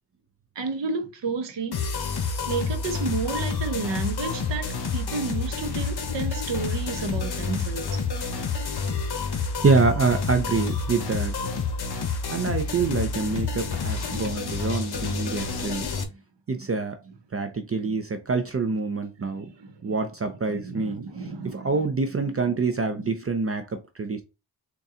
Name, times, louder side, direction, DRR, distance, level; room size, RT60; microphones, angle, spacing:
voice 1, 0.6-1.8 2.5-8.0 14.0-14.1 16.1-16.2 17.9-18.0 19.2-20.0 20.5-21.9 22.3-22.6 23.0-23.1, right 4 dB, 75° right, 0.9 m, -32 dB
sound 1, 1.7-16.0, left 5 dB, 60° left, 0.9 m, -29 dB
voice 2, 9.6-11.3 12.3-15.9 16.5-17.0 17.3-19.5 19.8-21.0 21.4-24.2, right 4 dB, 35° right, 0.5 m, -26 dB
4.1 x 2.3 x 3.7 m
wide cardioid pair, 115°, 43 cm